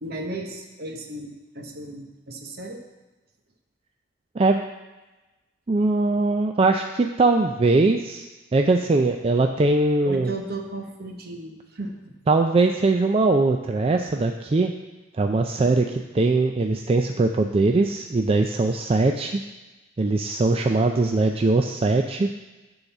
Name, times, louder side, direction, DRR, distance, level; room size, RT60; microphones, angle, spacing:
voice 1, 0.0-2.8 10.0-12.1, right 2 dB, 55° right, 3 dB, 1.1 m, -35 dB
voice 2, 5.7-8.2 8.5-10.3 12.3-14.7 15.1-19.4 20.0-22.3, right 3 dB, 30° right, 4 dB, 0.4 m, -21 dB
9.9 x 4.0 x 7.2 m, 1.1 s
head